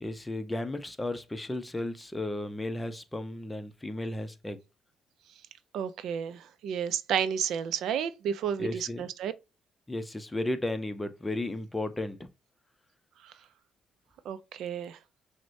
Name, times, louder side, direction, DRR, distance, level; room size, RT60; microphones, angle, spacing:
voice 1, 0.0-4.6 8.6-9.0 9.9-12.2, left 1 dB, 15° left, 0.6 m, -34 dB
voice 2, 5.7-9.3 14.3-15.0, right 8 dB, 80° right, 0.4 m, -31 dB
6.0 x 2.1 x 2.6 m
cardioid pair, 90°, 0 cm